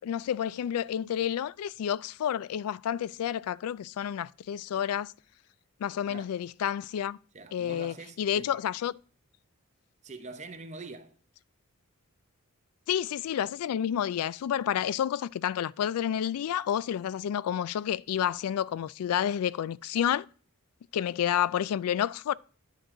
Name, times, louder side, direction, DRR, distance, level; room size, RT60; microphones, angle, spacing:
voice 1, 0.0-5.1 5.8-7.2 7.5-8.9 12.9-20.3 20.9-22.3, left 9 dB, 80° left, 0.3 m, -30 dB
voice 2, 7.3-8.6 10.0-11.2, right 3 dB, 30° right, 0.9 m, -44 dB
10.5 x 4.6 x 3.7 m
head